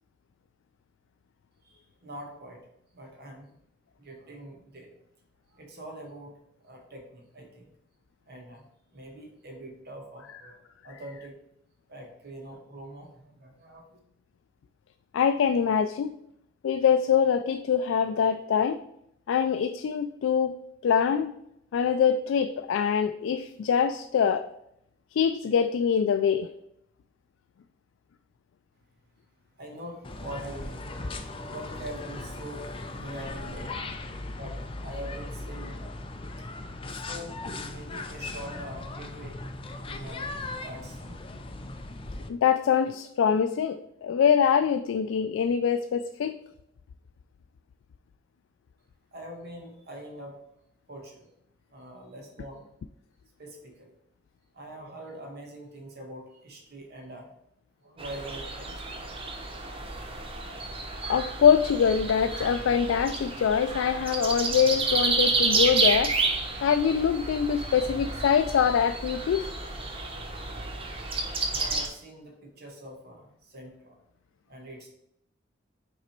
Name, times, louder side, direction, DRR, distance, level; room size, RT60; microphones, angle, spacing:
voice 1, 1.6-2.6 2.9-3.5 4.0-4.9 5.5-6.3 6.6-7.7 8.3-8.6 8.9-11.3 11.9-14.0 29.6-34.0 34.3-35.9 36.9-37.4 37.7-39.4 39.8-41.2 49.1-50.4 50.9-51.3 51.7-52.6 53.4-53.9 54.5-57.3 57.8-59.2 71.5-73.9 74.5-74.9, right 1 dB, 55° right, 1 dB, 1.6 m, -44 dB
voice 2, 15.1-16.2 16.6-18.8 19.3-20.6 20.8-21.3 21.7-24.5 25.1-26.5 42.3-46.4 61.1-66.1 66.6-69.5, left 7 dB, 85° left, 8 dB, 0.3 m, -24 dB
sound 1, 30.0-42.3, left 2 dB, 30° left, 0.5 m, -38 dB
sound 2, 58.0-71.9, right 3 dB, 30° right, 0.8 m, -30 dB
5.8 x 4.0 x 4.4 m, 0.77 s
head